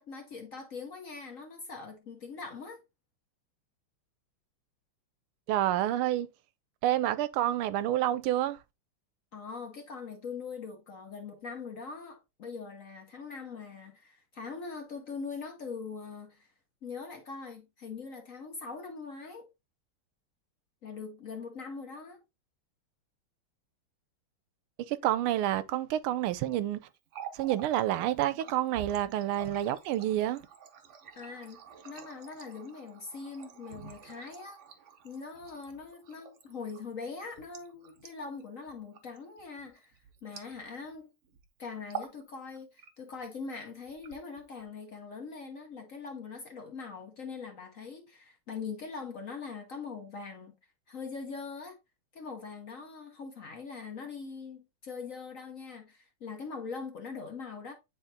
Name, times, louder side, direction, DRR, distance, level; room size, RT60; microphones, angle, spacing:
voice 1, 0.0-2.8 9.3-16.5 16.8-19.5 20.8-22.2 31.1-34.6 35.0-41.1 41.6-50.5 50.9-51.8 52.1-57.7, left 5 dB, 55° left, 1.0 m, -42 dB
voice 2, 5.5-6.3 6.8-8.6 24.8-26.9 27.3-30.4, right 13 dB, 85° right, 1.4 m, -29 dB
Water tap faucet, 26.9-41.0 41.2-41.5 41.8-42.2 42.6-43.2 43.9-44.6, right 8 dB, 60° right, 0.7 m, -47 dB
9.0 x 4.0 x 2.7 m
omnidirectional pair, 2.3 m